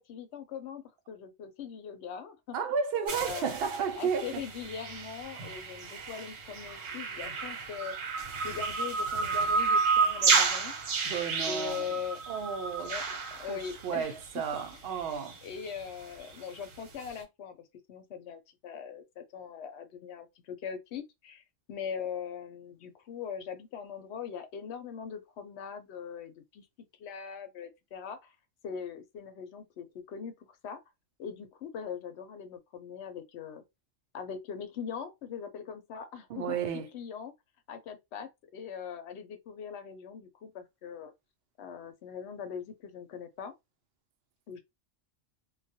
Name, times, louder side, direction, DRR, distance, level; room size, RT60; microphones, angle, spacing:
voice 1, 0.0-2.6 3.1-3.5 4.0-8.0 8.4-10.7 11.5-12.2 12.9-13.0 13.3-14.4 14.9-15.0 15.4-21.4 21.7-26.7 27.0-28.3 28.6-30.3 30.6-30.8 31.2-33.6 34.1-36.6 36.9-37.3 37.7-41.1 41.6-43.5 44.5-44.6, left 7 dB, 65° left, 0.8 m, -41 dB
voice 2, 2.5-4.4 11.0-11.9 12.3-12.9 13.5-15.4 36.3-36.9, right 6 dB, 60° right, 0.6 m, -33 dB
sound 1, 3.1-14.3 14.6-14.7 15.0-15.1 15.3-15.4 15.7-15.8, right 5 dB, 75° right, 1.1 m, -31 dB
2.3 x 2.1 x 2.6 m
omnidirectional pair, 1.3 m